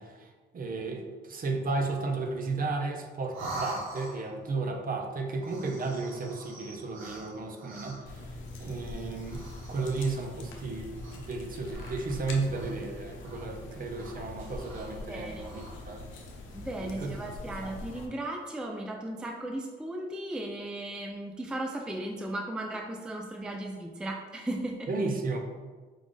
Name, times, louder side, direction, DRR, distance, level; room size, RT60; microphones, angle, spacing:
voice 1, 0.0-8.3 8.6-16.0 16.8-17.7 24.9-25.4, right 3 dB, 45° right, 3 dB, 0.7 m, -34 dB
sound 1, 3.3-4.5 5.4-8.2 9.2-10.3 10.9-11.4 11.7-12.9 13.2-13.4 13.9-15.0 15.3-15.7, right 2 dB, 80° right, 1.0 m, -43 dB
sound 2, 8.1-18.1, left 2 dB, 75° left, 0.7 m, -43 dB
voice 2, 15.1-15.5 16.5-24.9, right 1 dB, 5° right, 2 dB, 0.3 m, -36 dB
5.0 x 2.4 x 3.7 m, 1.4 s
cardioid pair, 90°, 20 cm